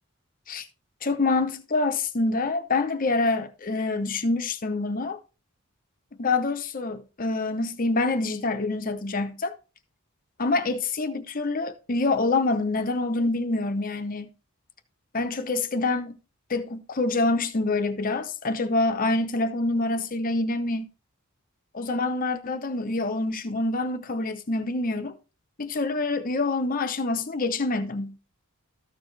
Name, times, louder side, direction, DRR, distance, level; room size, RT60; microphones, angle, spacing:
voice 1, 1.0-5.2 6.2-9.5 10.4-14.3 15.1-16.1 16.5-20.9 21.7-25.2 25.6-28.2, left 3 dB, 40° left, 0.7 m, -26 dB
13.5 x 4.8 x 3.9 m
head